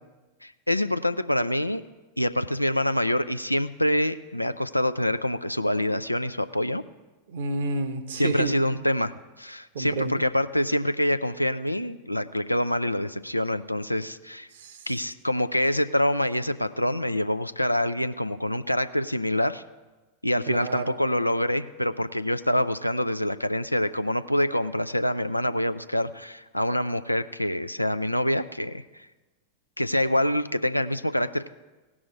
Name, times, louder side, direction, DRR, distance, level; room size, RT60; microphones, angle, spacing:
voice 1, 0.4-1.8 2.2-6.8 8.2-14.5 14.9-19.6 20.2-28.8 29.8-31.5, left 1 dB, 90° left, 12 dB, 0.4 m, -26 dB
voice 2, 7.3-8.9 9.7-10.2 14.5-14.9 20.5-21.0, right 3 dB, 60° right, 9 dB, 1.0 m, -30 dB
17.0 x 6.1 x 4.8 m, 1.2 s
figure-of-eight pair, 90°, 0 cm